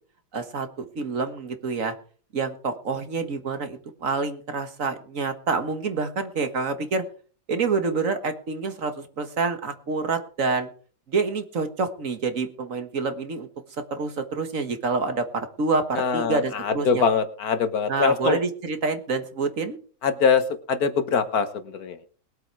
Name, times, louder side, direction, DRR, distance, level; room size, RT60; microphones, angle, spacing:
voice 1, 0.3-2.0 2.3-7.1 7.5-10.7 11.1-13.5 13.9-17.0 17.9-19.8, right 4 dB, 55° right, 8 dB, 1.8 m, -27 dB
voice 2, 15.9-18.4 20.0-22.1, left 5 dB, 65° left, 10 dB, 1.7 m, -23 dB
21.0 x 8.0 x 4.7 m, 0.44 s
omnidirectional pair, 1.7 m